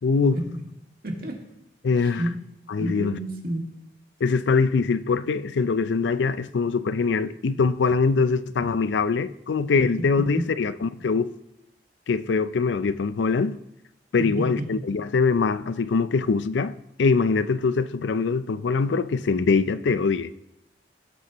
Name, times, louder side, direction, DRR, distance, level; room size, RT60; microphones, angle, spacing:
voice 1, 0.0-0.4 1.8-2.2 2.7-3.1 4.2-11.3 12.1-13.6 14.1-20.3, left 4 dB, 85° left, 0.4 m, -23 dB
voice 2, 1.0-1.4 2.0-2.3 2.8-3.6 10.3-10.4 14.2-14.7, right 1 dB, 55° right, 2.0 m, -30 dB
19.5 x 8.0 x 3.0 m
head